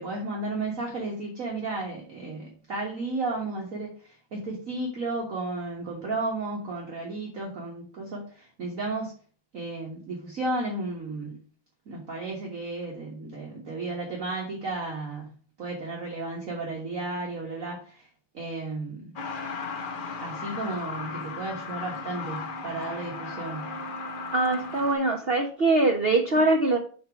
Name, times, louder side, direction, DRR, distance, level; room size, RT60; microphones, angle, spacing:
voice 1, 0.0-9.1 9.5-11.4 11.9-15.3 15.6-18.1 18.3-19.1 20.2-23.8, right 2 dB, 45° right, -2 dB, 1.6 m, -33 dB
Truck, 19.2-24.9, left 4 dB, 80° left, 0.4 m, -36 dB
voice 2, 24.3-26.8, right 2 dB, 85° right, 3 dB, 0.5 m, -23 dB
5.8 x 4.4 x 5.8 m, 0.41 s
omnidirectional pair, 2.3 m